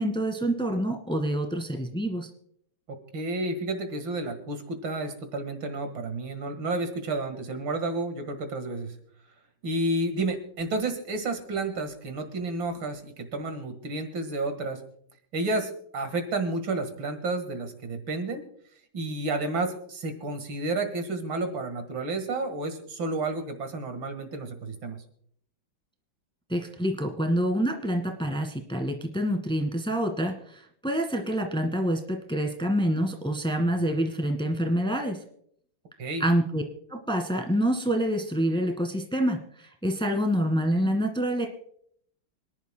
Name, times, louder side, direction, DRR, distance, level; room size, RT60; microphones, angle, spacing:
voice 1, 0.0-2.3 26.5-35.2 36.2-36.6 36.9-41.5, equal, 5° left, 4 dB, 1.5 m, -27 dB
voice 2, 2.9-9.0 9.6-14.8 15.3-18.4 18.9-25.0 36.0-36.3, right 2 dB, 75° right, 7 dB, 2.5 m, -31 dB
26.5 x 11.0 x 2.2 m, 0.66 s
omnidirectional pair, 2.1 m